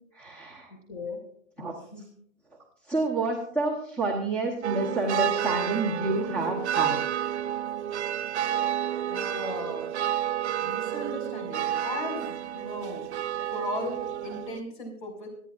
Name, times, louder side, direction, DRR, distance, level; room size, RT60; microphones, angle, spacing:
voice 1, 0.1-0.7 1.6-1.7 2.9-7.0, right 2 dB, 5° left, -2 dB, 0.9 m, -29 dB
voice 2, 0.9-1.2 1.9-2.0 9.1-9.9 10.6-13.1 13.5-15.3, left 2 dB, 40° left, 4 dB, 5.4 m, -37 dB
sound 1, 4.6-14.6, right 11 dB, 60° right, 0.7 m, -30 dB
26.0 x 9.9 x 2.5 m, 0.64 s
hypercardioid pair, 175°, 39 cm